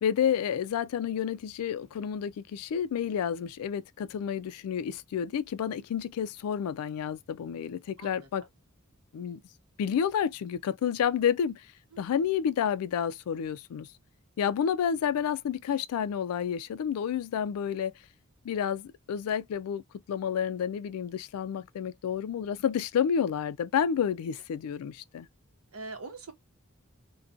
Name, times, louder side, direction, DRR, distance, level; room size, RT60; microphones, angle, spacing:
voice 1, 0.0-8.5 9.1-9.4 9.8-11.7 12.0-13.9 14.4-17.9 18.4-19.8 20.1-25.3, left 8 dB, 85° left, 0.3 m, -30 dB
voice 2, 8.0-8.3 11.9-12.1 25.7-26.3, right 3 dB, 85° right, 0.8 m, -43 dB
2.5 x 2.2 x 2.4 m
head